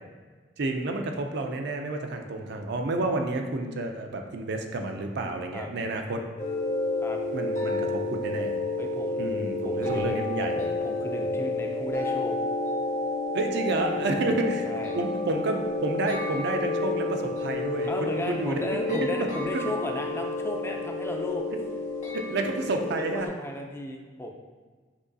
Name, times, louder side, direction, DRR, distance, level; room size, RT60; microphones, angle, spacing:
voice 1, 0.6-6.2 7.3-8.5 9.2-10.6 13.3-14.7 14.9-19.3 19.5-19.6 22.1-23.3, right 2 dB, 60° right, 4 dB, 0.5 m, -30 dB
sound 1, 6.4-23.3, left 2 dB, 40° left, 1.0 m, -30 dB
voice 2, 8.8-9.3 9.6-10.2 10.6-12.3 14.1-14.3 14.6-15.0 17.9-21.4 23.1-24.3, left 1 dB, 15° left, 2 dB, 0.4 m, -35 dB
Keyboard (musical), 9.8-12.4, left 5 dB, 85° right, 1.2 m, -40 dB
6.2 x 2.9 x 2.7 m, 1.4 s
head